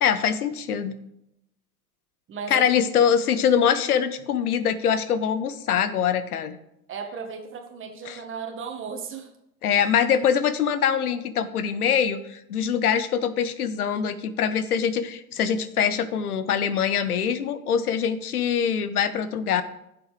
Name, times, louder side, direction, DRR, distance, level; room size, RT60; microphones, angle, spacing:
voice 1, 0.0-1.0 2.5-6.6 8.1-8.2 9.6-19.6, left 8 dB, 80° left, 13 dB, 0.8 m, -23 dB
voice 2, 2.3-2.6 6.9-9.3, right 6 dB, 25° right, 5 dB, 1.5 m, -35 dB
11.5 x 7.1 x 3.3 m, 0.81 s
hypercardioid pair, 95°, 44 cm